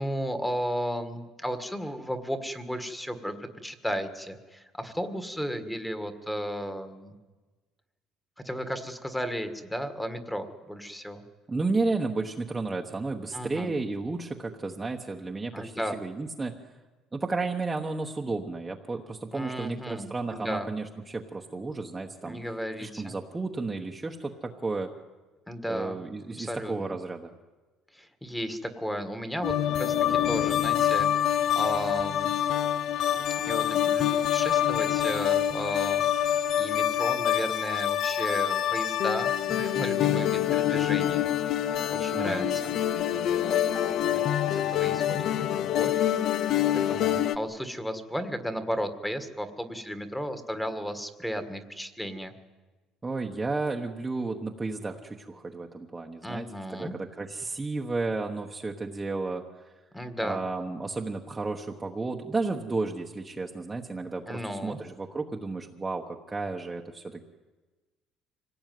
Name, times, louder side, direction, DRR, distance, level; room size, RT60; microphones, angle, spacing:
voice 1, 0.0-7.1 8.4-11.2 13.3-13.7 15.5-16.0 19.3-20.7 22.2-23.1 25.5-26.0 26.4-26.9 27.9-31.1 31.5-32.3 33.5-36.0 36.6-41.6 41.9-42.7 43.1-43.6 44.0-46.1 46.9-52.3 56.2-56.9 59.9-60.4 64.3-64.8, equal, 5° left, 9 dB, 1.6 m, -34 dB
voice 2, 11.5-16.5 17.1-22.4 22.8-24.9 25.7-27.3 42.1-42.6 53.0-59.7 60.2-67.2, right 3 dB, 10° right, 1 dB, 1.1 m, -32 dB
sound 1, 29.4-47.4, left 10 dB, 50° left, 0.7 m, -26 dB
25.5 x 17.5 x 9.4 m, 1.2 s
cardioid pair, 155°, 0 cm